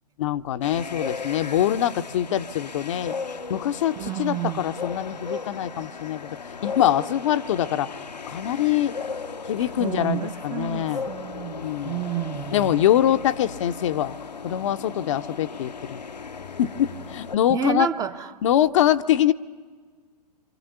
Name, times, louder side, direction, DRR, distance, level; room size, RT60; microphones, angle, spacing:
voice 1, 0.2-3.2 3.5-7.9 8.3-9.0 9.5-11.0 11.6-12.0 12.5-14.1 14.4-16.0 16.6-17.9 18.4-19.3, left 11 dB, 45° left, 10 dB, 0.7 m, -24 dB
sound 1, 0.6-17.4, left 5 dB, 80° left, 0.8 m, -36 dB
voice 2, 4.0-4.7 9.8-12.8 17.5-18.3, right 9 dB, 15° right, 10 dB, 0.7 m, -30 dB
27.5 x 25.0 x 6.9 m, 1.5 s
figure-of-eight pair, 105°, 21 cm